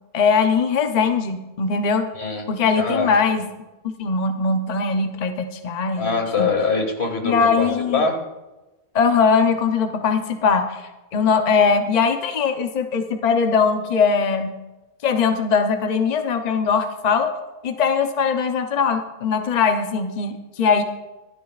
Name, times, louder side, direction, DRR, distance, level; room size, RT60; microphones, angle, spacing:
voice 1, 0.1-2.1 2.5-3.5 4.0-6.5 7.2-8.0 8.9-14.5 15.0-17.4 17.6-20.8, left 5 dB, 45° left, 6 dB, 0.8 m, -20 dB
voice 2, 2.1-2.5 2.8-3.1 6.0-8.2, left 4 dB, 85° left, 3 dB, 2.1 m, -23 dB
25.0 x 9.2 x 2.4 m, 1.0 s
omnidirectional pair, 1.1 m